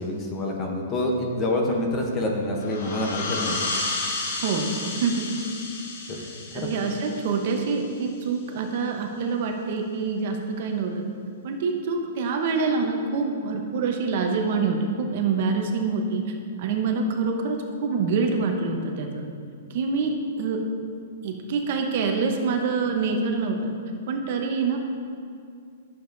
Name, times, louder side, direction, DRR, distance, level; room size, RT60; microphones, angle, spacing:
voice 1, 0.0-3.6 6.1-6.2 6.5-6.7, left 1 dB, 15° left, 1 dB, 0.6 m, -27 dB
sound 1, 2.6-8.0, left 3 dB, 50° left, 1.0 m, -32 dB
voice 2, 4.4-5.3 6.5-11.0 11.4-16.2 16.6-19.2 19.7-20.6 21.2-23.7 24.1-24.8, right 4 dB, 40° right, 3 dB, 0.7 m, -26 dB
11.5 x 6.9 x 2.5 m, 2.4 s
hypercardioid pair, 180°, 0 cm